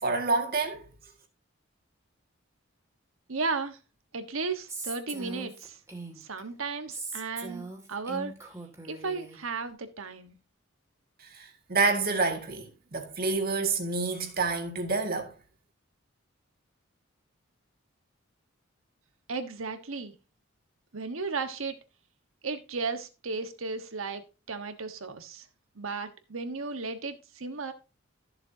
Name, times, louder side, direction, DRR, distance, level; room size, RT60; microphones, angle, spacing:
voice 1, 0.0-0.8 11.2-15.3, right 4 dB, 50° right, 2.0 m, -28 dB
voice 2, 3.3-3.8 4.1-5.8 6.2-8.3 8.9-10.4 19.3-20.1 20.9-21.7 22.4-25.5 25.7-27.7, right 4 dB, 90° right, 1.3 m, -35 dB
Female speech woman speaking, 4.7-6.4 6.9-9.4, right 3 dB, 15° right, 2.2 m, -40 dB
14.0 x 7.1 x 2.8 m
head